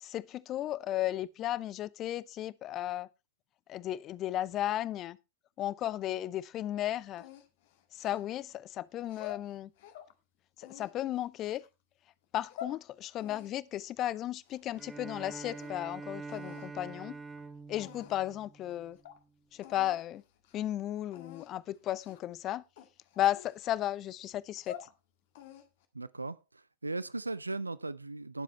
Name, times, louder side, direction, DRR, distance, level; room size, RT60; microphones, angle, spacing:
voice 1, 0.0-3.1 3.7-5.2 5.6-7.3 7.9-9.7 10.6-11.7 12.3-17.2 17.7-19.0 19.5-20.2 20.5-22.6 23.2-24.9, left 13 dB, 35° left, 0.6 m, -34 dB
sound 1, 7.2-8.5 9.0-10.1 10.6-11.7 12.2-12.8 13.2-15.0 15.2-15.9 16.3-16.7 17.4-17.5 17.8-18.3 18.7-18.8 19.0-19.2 19.6-20.0 20.3-20.6 21.1-21.5 22.0-22.3 22.8-23.9 24.4-24.9 25.3-25.9, left 10 dB, 55° left, 1.7 m, -48 dB
Bowed string instrument, 14.7-19.2, right 3 dB, 10° right, 1.7 m, -45 dB
voice 2, 25.9-28.4, right 3 dB, 80° right, 0.5 m, -38 dB
19.0 x 7.5 x 3.2 m
figure-of-eight pair, 90°, 0 cm